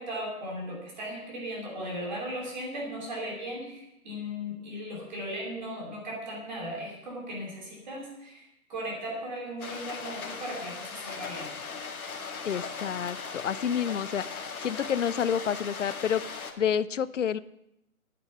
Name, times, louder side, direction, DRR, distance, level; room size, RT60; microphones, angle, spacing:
voice 1, 0.0-11.5, equal, 30° right, -1 dB, 3.0 m, -37 dB
sound 1, 9.6-16.5, left 5 dB, 80° left, 1.9 m, -38 dB
voice 2, 12.4-16.2 16.6-17.4, left 8 dB, 60° left, 17 dB, 0.6 m, -29 dB
10.5 x 9.7 x 6.6 m, 0.85 s
hypercardioid pair, 175°, 43 cm